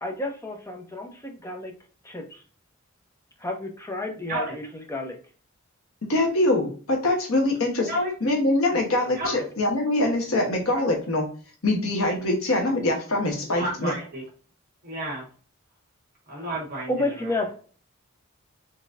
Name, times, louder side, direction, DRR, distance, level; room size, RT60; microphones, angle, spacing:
voice 1, 0.0-1.7 2.0-2.4 3.4-5.2 16.3-16.6 16.9-17.5, left 2 dB, 15° left, 3 dB, 0.8 m, -31 dB
voice 2, 6.1-7.9 8.2-11.2 11.6-13.9, left 2 dB, 80° left, 1 dB, 1.2 m, -23 dB
voice 3, 13.5-14.2 14.8-15.2 16.3-16.9 17.2-17.3, right 1 dB, 45° right, -3 dB, 1.4 m, -30 dB
4.0 x 3.7 x 2.5 m, 0.40 s
head